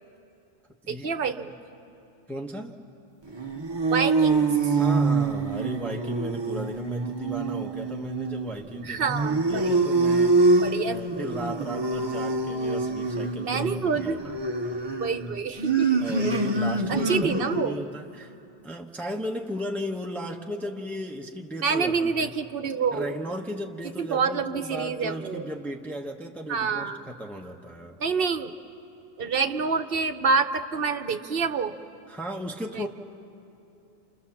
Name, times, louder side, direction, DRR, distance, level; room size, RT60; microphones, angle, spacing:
voice 1, 0.9-1.5 3.9-4.7 8.8-9.7 10.6-11.2 13.4-14.2 15.0-16.5 16.9-17.8 21.6-23.2 24.0-25.4 26.5-27.0 28.0-28.5 29.2-31.8 32.7-32.9, right 5 dB, 55° right, 9 dB, 1.1 m, -27 dB
voice 2, 2.3-2.8 4.7-14.3 14.7-15.0 16.0-18.3 18.6-22.3 22.9-28.0 32.1-32.9, equal, ahead, 1 dB, 1.0 m, -36 dB
sound 1, 3.3-17.8, right 3 dB, 25° right, 0.9 m, -25 dB
29.0 x 28.0 x 7.2 m, 2.8 s
omnidirectional pair, 1.1 m